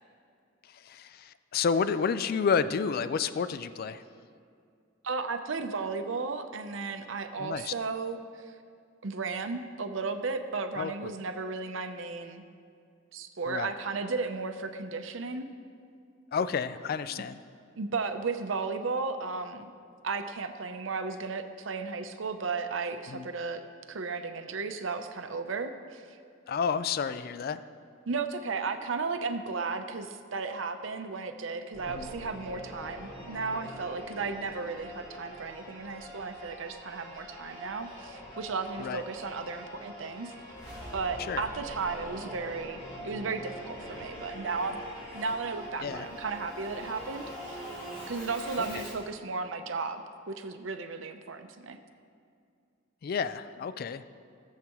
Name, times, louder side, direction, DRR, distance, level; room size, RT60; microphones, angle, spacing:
voice 1, 0.7-4.0 7.4-7.7 10.8-11.1 13.5-13.7 16.3-17.4 23.1-23.3 26.5-27.6 31.9-32.1 38.8-39.0 41.2-41.4 45.8-46.1 53.0-54.0, left 6 dB, 50° left, 13 dB, 0.3 m, -30 dB
voice 2, 5.0-8.6 9.0-12.4 13.1-15.5 17.8-19.7 20.0-23.6 23.9-26.0 28.1-40.3 40.9-44.8 45.1-47.7 48.1-50.0 50.3-51.8, right 4 dB, 70° right, 8 dB, 0.7 m, -34 dB
Singing / Musical instrument, 31.7-49.1, equal, 20° left, 1.9 m, -43 dB
18.0 x 7.5 x 3.0 m, 2.3 s
head